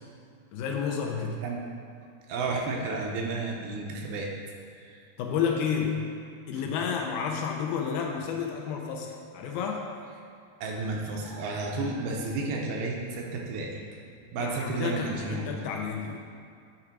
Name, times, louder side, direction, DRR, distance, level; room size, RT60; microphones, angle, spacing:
voice 1, 0.5-1.4 5.2-6.1 6.5-9.8 14.4-16.2, left 6 dB, 80° left, 1 dB, 2.4 m, -31 dB
voice 2, 2.3-4.3 4.7-5.0 10.6-13.8 14.3-15.6, right 3 dB, 80° right, -1 dB, 2.6 m, -32 dB
9.9 x 3.8 x 4.6 m, 2.3 s
omnidirectional pair, 4.5 m